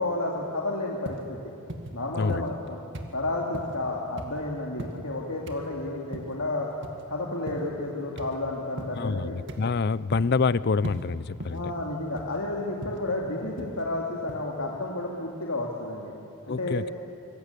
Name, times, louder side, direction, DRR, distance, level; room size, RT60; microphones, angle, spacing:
voice 1, 0.0-1.4 1.9-2.8 3.1-6.7 7.1-9.4 11.5-16.1 16.5-16.8, left 2 dB, 90° left, -2 dB, 2.5 m, -31 dB
sound 1, 1.1-1.3 1.7-2.0 2.3-2.7 2.9-3.2 3.5-3.8 4.2-4.4 4.8-5.0 5.5-5.7 6.1-6.4 6.8-7.0 7.5-7.7 8.2-8.4 8.8-9.0 9.5-9.8 10.1-10.4 10.8-11.0 11.4-11.7 12.2-12.4 12.8-13.0 13.6-13.8 14.3-14.4, right 1 dB, 55° right, 2.1 m, -38 dB
voice 2, 8.9-11.7 16.5-16.9, left 4 dB, 50° left, 19 dB, 0.5 m, -27 dB
25.0 x 22.5 x 8.4 m, 3.0 s
head